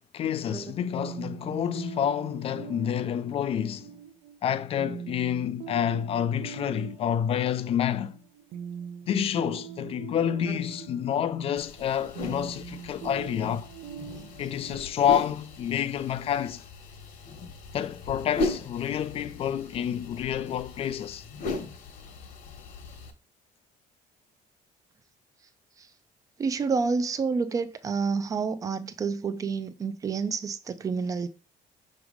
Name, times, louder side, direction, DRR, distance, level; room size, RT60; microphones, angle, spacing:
voice 1, 0.1-3.9 4.4-8.2 9.1-13.7 14.4-16.6 17.7-21.2, left 9 dB, 40° left, 0.4 m, -28 dB
sound 1, 1.0-16.6, right 8 dB, 80° right, 0.7 m, -43 dB
sound 2, 11.6-23.1, left 3 dB, 65° left, 1.3 m, -38 dB
voice 2, 26.4-31.3, right 5 dB, 20° right, 0.4 m, -29 dB
6.1 x 3.2 x 5.0 m
cardioid pair, 170°, 15 cm